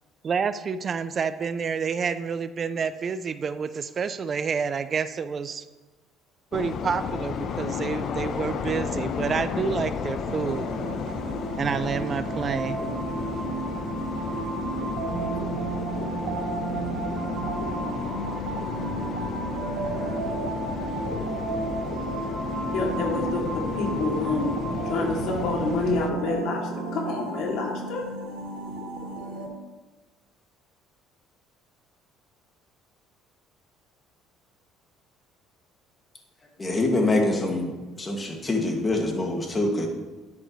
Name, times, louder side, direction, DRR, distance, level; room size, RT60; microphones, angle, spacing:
voice 1, 0.2-5.7 6.5-10.7 11.6-12.8, right 6 dB, 35° right, 12 dB, 0.5 m, -28 dB
sound 1, 6.5-26.1, left 6 dB, 50° left, 0.7 m, -33 dB
sound 2, 10.3-29.5, right 3 dB, 85° right, 3.1 m, -32 dB
voice 2, 22.7-24.6 24.8-28.1, left 3 dB, 70° left, 0 dB, 2.7 m, -28 dB
voice 3, 36.6-37.7 38.0-39.9, left 2 dB, 20° left, 1 dB, 2.1 m, -25 dB
10.5 x 10.5 x 3.2 m, 1.2 s
cardioid pair, 110°, 0 cm